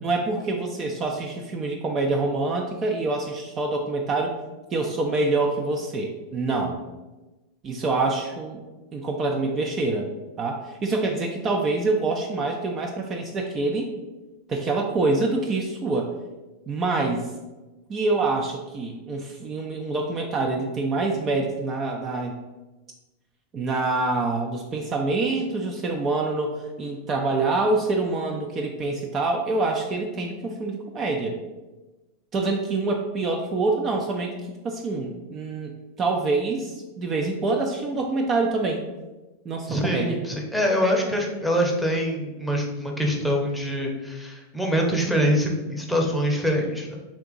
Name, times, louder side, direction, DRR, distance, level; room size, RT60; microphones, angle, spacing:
voice 1, 0.0-4.3 4.7-6.8 7.6-8.6 8.9-10.1 10.4-13.9 14.5-16.1 16.7-17.3 17.9-22.4 23.5-31.3 32.3-34.3 34.6-35.7 36.0-38.8 39.4-40.2, right 3 dB, 30° right, 1 dB, 0.5 m, -26 dB
voice 2, 39.7-47.0, equal, 5° left, 0 dB, 0.8 m, -24 dB
3.5 x 2.8 x 3.8 m, 1.1 s
hypercardioid pair, 95°, 0 cm